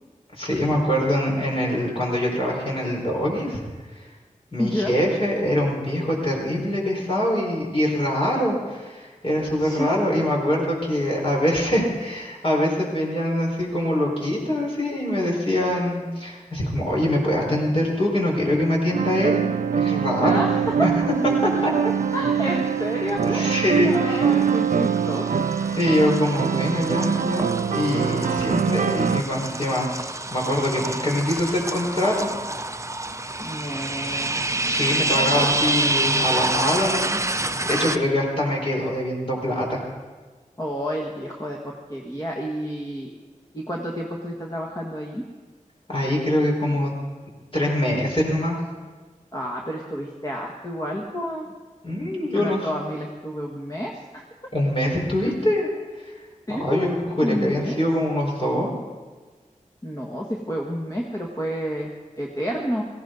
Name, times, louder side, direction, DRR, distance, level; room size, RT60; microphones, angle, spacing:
voice 1, 0.3-3.6 3.9-4.1 4.5-19.4 19.7-20.4 20.8-20.9 21.4-21.7 22.4-22.6 23.0-24.3 25.8-32.3 34.6-37.2 37.6-39.8 45.9-46.9 47.5-48.6 51.8-52.7 54.5-55.7 56.0-56.1 56.6-58.7, left 1 dB, 45° left, -3 dB, 4.7 m, -24 dB
voice 2, 4.6-4.9 9.6-10.0 20.2-20.9 22.1-25.4 33.4-34.4 35.1-35.9 40.6-43.1 43.5-45.2 49.3-51.5 52.3-54.2 55.2-55.3 56.5-56.9 57.2-57.8 59.8-62.8, equal, 25° left, -2 dB, 1.6 m, -29 dB
sound 1, 18.9-29.2, right 7 dB, 75° right, 0.4 m, -23 dB
sound 2, 21.6-22.1 22.5-38.0, right 2 dB, 20° right, 0.5 m, -28 dB
18.0 x 16.0 x 4.0 m, 1.4 s
wide cardioid pair, 65°, 13 cm